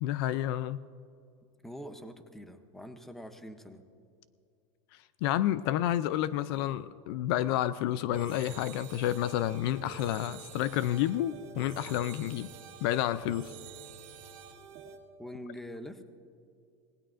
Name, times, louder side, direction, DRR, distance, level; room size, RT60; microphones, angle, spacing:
voice 1, 0.0-0.8 5.2-12.5 12.8-13.5, left 12 dB, 50° left, 15 dB, 0.4 m, -30 dB
voice 2, 1.6-3.8 15.2-16.0, equal, ahead, 8 dB, 0.6 m, -44 dB
sound 1, 8.1-15.0, right 7 dB, 50° right, 2.1 m, -48 dB
25.5 x 19.0 x 2.5 m, 2.4 s
supercardioid pair, 170°, 16 cm